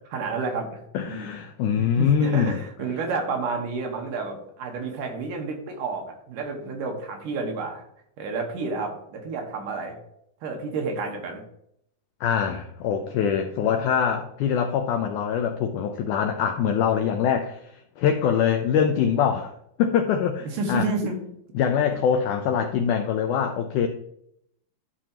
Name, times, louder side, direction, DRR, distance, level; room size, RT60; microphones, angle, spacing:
voice 1, 0.1-1.3 1.8-7.8 8.2-10.0 10.4-11.4 20.5-21.2, right 4 dB, 70° right, 2 dB, 2.7 m, -30 dB
voice 2, 0.9-2.6 12.2-17.6 18.0-19.5 19.8-20.9 21.6-23.9, left 7 dB, 85° left, 6 dB, 1.8 m, -23 dB
12.5 x 4.9 x 2.9 m, 0.73 s
omnidirectional pair, 4.2 m